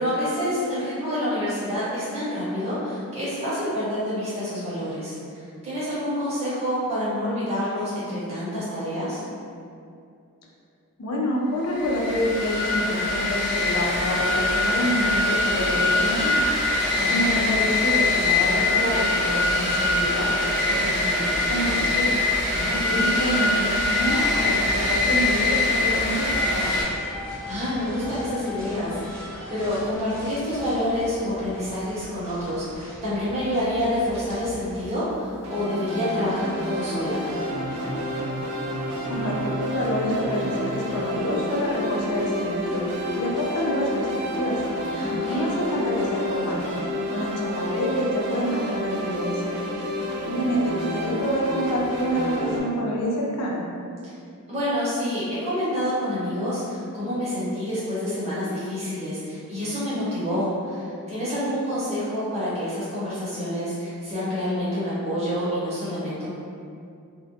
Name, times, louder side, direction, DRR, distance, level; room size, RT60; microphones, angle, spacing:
voice 1, 0.0-9.2 16.8-17.2 22.5-23.1 27.5-37.2 44.9-45.5 54.5-66.3, equal, 30° right, -10 dB, 0.8 m, -28 dB
voice 2, 11.0-16.4 17.1-20.3 20.7-22.2 22.8-26.8 39.1-42.8 43.2-44.6 45.3-46.6 47.1-49.6 50.2-53.6, equal, 85° left, -2 dB, 0.5 m, -27 dB
sound 1, 11.7-26.8, left 2 dB, 35° left, 1.3 m, -23 dB
sound 2, 24.0-34.9, left 1 dB, 5° left, 0.5 m, -39 dB
sound 3, 35.4-52.6, equal, 80° right, 0.4 m, -29 dB
2.5 x 2.1 x 2.7 m, 2.4 s
head